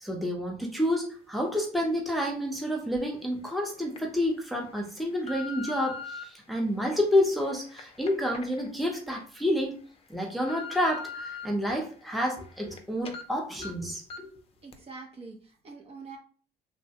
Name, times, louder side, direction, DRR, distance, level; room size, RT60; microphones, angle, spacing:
voice 1, 0.0-9.8 10.1-14.3, left 1 dB, ahead, 0 dB, 0.7 m, -29 dB
sound 1, 2.9-3.0 3.7-4.0 4.6-6.2 6.9-9.2 9.6-9.7 10.2-11.5 11.9-12.8 13.0-13.2 13.6-13.7 14.1-14.4 14.7-14.8, left 4 dB, 35° left, 0.5 m, -42 dB
voice 2, 14.6-16.2, right 4 dB, 35° right, 1 dB, 0.7 m, -45 dB
3.2 x 2.1 x 2.8 m, 0.40 s
cardioid pair, 110°, 17 cm